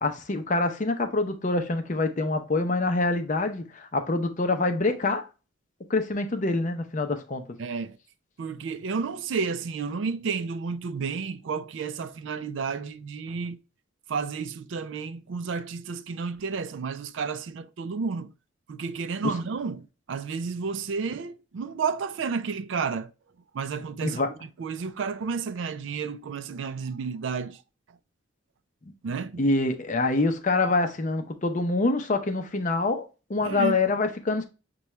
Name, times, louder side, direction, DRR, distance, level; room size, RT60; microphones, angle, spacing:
voice 1, 0.0-5.2 5.9-7.4 19.2-19.4 24.0-24.3 29.4-34.4, left 3 dB, 40° left, 0.6 m, -26 dB
voice 2, 7.6-8.0 8.4-13.6 14.1-18.3 18.7-23.1 23.5-24.3 24.6-27.6 29.0-29.4 33.4-33.8, right 5 dB, 70° right, 0.4 m, -31 dB
6.6 x 2.3 x 3.0 m
head